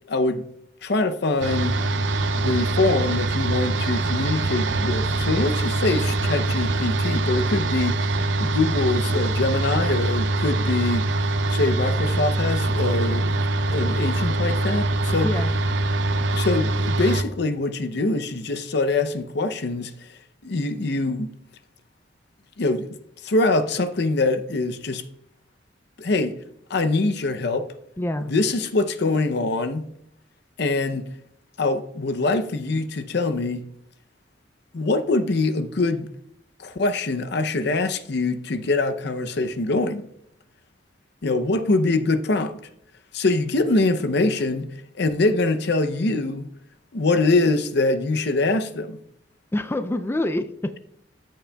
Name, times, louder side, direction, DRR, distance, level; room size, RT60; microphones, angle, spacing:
voice 1, 0.1-0.5 0.8-1.7 2.4-8.1 8.4-11.1 11.5-13.4 13.7-15.3 16.3-19.9 20.4-21.3 22.6-22.9 23.2-25.0 26.0-26.4 26.7-27.7 28.3-29.9 30.6-31.0 31.6-33.6 34.7-36.1 36.6-40.0 41.2-42.6 43.1-44.7 44.9-46.5 46.9-49.0, left 2 dB, 65° left, 0.6 m, -23 dB
sound 1, 1.4-17.2, right 2 dB, 80° right, 0.7 m, -23 dB
voice 2, 15.2-15.5 28.0-28.3 49.5-50.8, left 1 dB, 15° left, 0.4 m, -26 dB
13.5 x 7.4 x 2.3 m
head